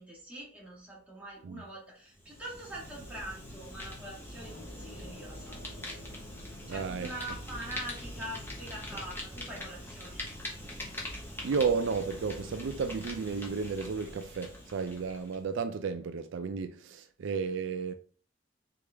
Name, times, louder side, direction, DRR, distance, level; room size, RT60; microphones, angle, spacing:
voice 1, 0.0-5.6 6.4-10.4, right 1 dB, 5° right, 1.7 m, -44 dB
Fire, 2.1-15.4, left 1 dB, 10° left, 1.0 m, -43 dB
sound 1, 4.3-10.2, left 1 dB, 55° left, 1.8 m, -52 dB
voice 2, 6.7-7.1 11.4-17.9, right 5 dB, 70° right, 0.4 m, -33 dB
4.1 x 3.5 x 3.4 m
head